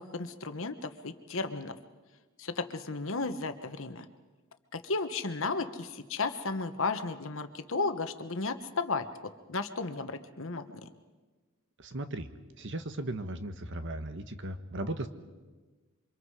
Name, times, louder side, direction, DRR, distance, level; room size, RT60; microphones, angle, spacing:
voice 1, 0.0-1.8 2.4-4.0 4.7-9.1 9.5-10.6, left 3 dB, 60° left, 9 dB, 1.3 m, -34 dB
voice 2, 11.8-12.3 12.6-15.1, right 1 dB, 55° right, 9 dB, 1.4 m, -37 dB
28.0 x 25.0 x 5.0 m, 1.3 s
head